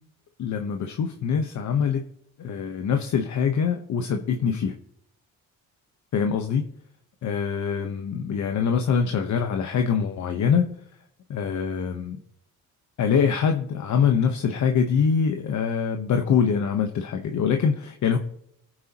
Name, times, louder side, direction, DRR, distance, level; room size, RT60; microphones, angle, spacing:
voice 1, 0.4-2.0 2.4-4.7 6.1-6.7 7.2-10.7 11.3-12.2 13.0-18.2, left 6 dB, 60° left, 5 dB, 1.2 m, -24 dB
21.0 x 9.3 x 3.0 m, 0.70 s
cardioid pair, 110°, 32 cm